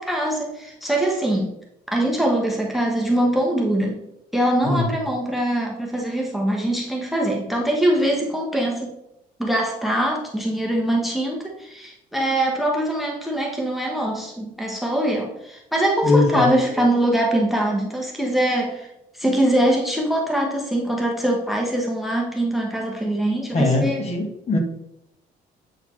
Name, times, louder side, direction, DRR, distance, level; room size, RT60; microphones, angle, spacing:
voice 1, 0.0-1.5 1.9-4.0 4.3-8.9 9.4-18.9 19.1-24.0, right 1 dB, ahead, -1 dB, 0.9 m, -23 dB
voice 2, 16.0-16.5 23.5-24.6, left 2 dB, 40° left, 3 dB, 1.3 m, -20 dB
7.8 x 4.2 x 3.1 m, 0.83 s
cardioid pair, 110°, 17 cm